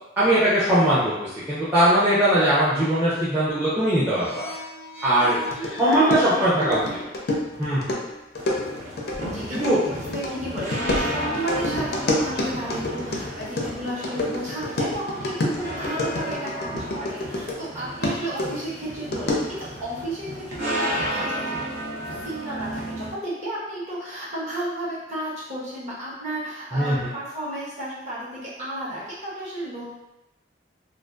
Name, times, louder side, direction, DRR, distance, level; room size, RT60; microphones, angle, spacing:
voice 1, 0.2-1.1 1.5-4.4 5.0-5.4 5.8-6.8 7.6-7.9 9.5-9.8 26.7-27.0, right 1 dB, 10° right, -12 dB, 0.5 m, -20 dB
sound 1, 4.1-7.3, left 1 dB, 80° right, 1.5 m, -39 dB
sound 2, 5.5-17.7 18.0-19.6, left 2 dB, 55° left, 0.4 m, -28 dB
voice 2, 5.6-7.1 9.3-29.9, right 1 dB, 40° right, -9 dB, 0.9 m, -33 dB
sound 3, 8.4-23.1, right 1 dB, 60° right, 0.7 m, -33 dB
2.5 x 2.3 x 2.2 m, 0.94 s
head